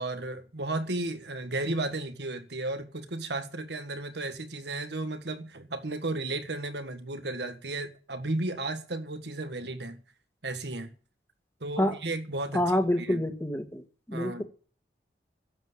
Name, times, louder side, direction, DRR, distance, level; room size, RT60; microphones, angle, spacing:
voice 1, 0.0-10.0 10.4-10.9 11.6-12.6 13.0-13.2 14.1-14.4, right 2 dB, 75° right, 1.6 m, -34 dB
voice 2, 12.5-13.8 14.1-14.4, left 1 dB, 15° left, 1.7 m, -27 dB
11.5 x 8.1 x 9.8 m
head